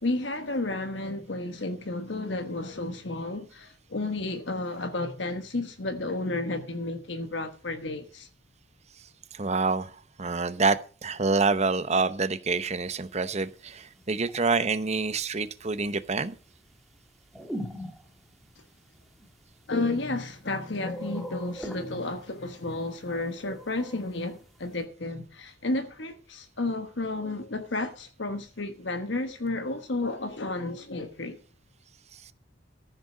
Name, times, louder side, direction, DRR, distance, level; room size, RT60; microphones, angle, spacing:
voice 1, 0.0-8.3 19.7-31.4, left 2 dB, 70° left, 1.2 m, -32 dB
voice 2, 9.3-9.9 10.2-16.3 32.2-32.3, right 4 dB, 35° right, 0.8 m, -27 dB
sound 1, 13.8-14.7 17.3-18.5 19.2-19.3 20.3-20.5 20.8-22.5 23.4-24.4, equal, ahead, 1.4 m, -40 dB
14.5 x 6.6 x 6.1 m
head